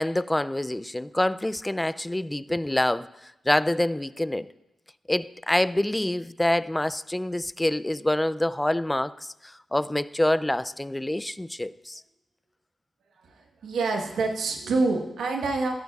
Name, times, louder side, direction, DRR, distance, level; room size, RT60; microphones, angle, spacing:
voice 1, 0.0-4.5 5.1-12.0, left 1 dB, 15° left, 16 dB, 0.4 m, -26 dB
voice 2, 13.2-15.7, right 3 dB, 85° right, 2 dB, 1.2 m, -27 dB
14.5 x 13.0 x 2.4 m, 0.93 s
cardioid pair, 50°, 0 cm